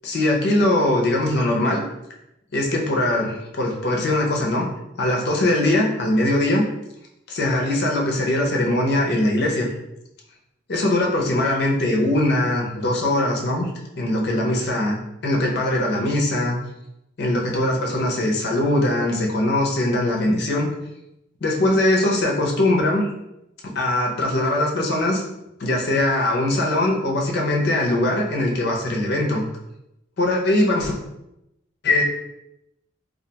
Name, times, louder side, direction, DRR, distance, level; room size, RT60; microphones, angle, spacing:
voice 1, 0.0-1.8 2.5-4.7 5.0-6.6 7.3-9.7 10.7-13.7 14.0-16.6 17.2-20.7 21.4-23.1 23.6-25.2 25.6-29.4 30.2-30.9 31.8-32.0, left 1 dB, 55° left, 0 dB, 0.5 m, -21 dB
2.3 x 2.1 x 2.8 m, 0.87 s
head